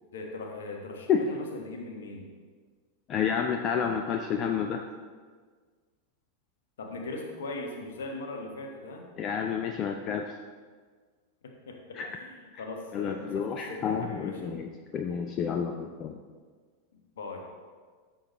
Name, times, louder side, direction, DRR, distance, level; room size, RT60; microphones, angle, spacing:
voice 1, 0.1-2.3 6.8-9.1 11.4-14.6 16.9-17.4, left 2 dB, 60° left, 2 dB, 1.4 m, -40 dB
voice 2, 3.1-4.8 9.2-10.4 11.9-12.1 12.9-14.7 14.9-16.2, left 7 dB, 30° left, 5 dB, 0.5 m, -29 dB
13.0 x 7.0 x 3.1 m, 1.5 s
figure-of-eight pair, 90°, 0 cm